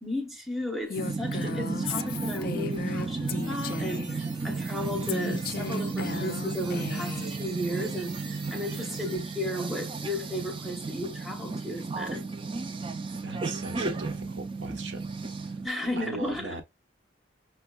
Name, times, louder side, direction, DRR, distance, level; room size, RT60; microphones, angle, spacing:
voice 1, 0.0-12.3 15.6-16.6, left 1 dB, ahead, 0.7 m, -34 dB
Female speech woman speaking, 0.9-4.2 5.1-7.3, left 7 dB, 50° left, 0.3 m, -36 dB
sound 1, 1.0-15.7, right 4 dB, 25° right, 0.4 m, -33 dB
sound 2, 3.3-9.2, right 4 dB, 45° right, 1.3 m, -47 dB
voice 2, 13.2-15.1 15.4-15.6 16.0-16.6, right 2 dB, 75° right, 1.0 m, -39 dB
5.8 x 2.2 x 2.2 m
head